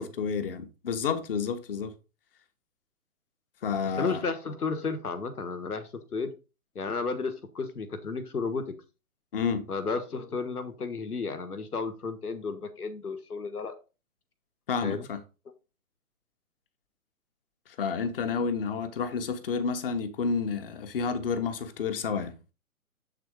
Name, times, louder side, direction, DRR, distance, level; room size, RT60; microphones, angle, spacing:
voice 1, 0.0-1.9 3.6-4.2 9.3-9.6 14.7-15.2 17.7-22.4, left 5 dB, 40° left, 1.1 m, -30 dB
voice 2, 3.9-6.3 6.7-8.7 9.7-13.7 14.8-15.1, left 4 dB, 80° left, 1.4 m, -33 dB
7.9 x 4.0 x 4.7 m
figure-of-eight pair, 135°, 44 cm